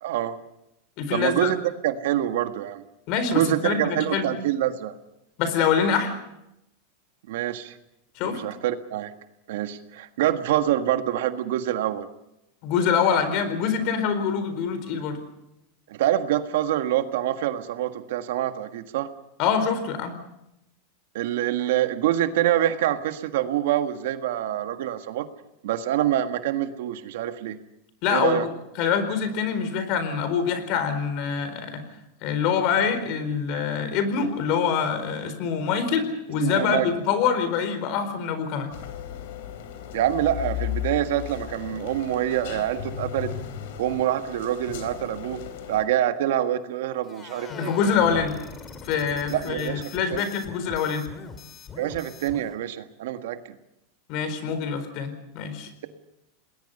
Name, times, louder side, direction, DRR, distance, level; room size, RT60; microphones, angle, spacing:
voice 1, 0.0-0.4 1.1-1.6 1.8-2.8 3.3-4.9 7.3-7.7 8.2-9.1 9.5-12.1 15.9-19.1 21.1-25.3 25.6-27.6 28.1-28.5 36.4-36.9 39.9-43.3 43.8-45.4 45.7-47.7 49.3-50.2 51.8-53.4, right 12 dB, 75° right, 8 dB, 1.6 m, -26 dB
voice 2, 1.0-1.5 3.1-4.3 5.4-6.2 8.2-8.4 12.6-15.2 19.4-20.2 28.0-28.5 28.8-31.8 32.2-38.7 47.5-48.4 48.8-51.1 54.1-55.7, left 6 dB, 55° left, 10 dB, 4.3 m, -25 dB
sound 1, 38.7-45.8, left 11 dB, 70° left, 3.5 m, -35 dB
sound 2, 47.0-52.6, left 5 dB, 25° left, 2.7 m, -41 dB
28.0 x 20.0 x 5.5 m, 0.85 s
supercardioid pair, 130°, 0 cm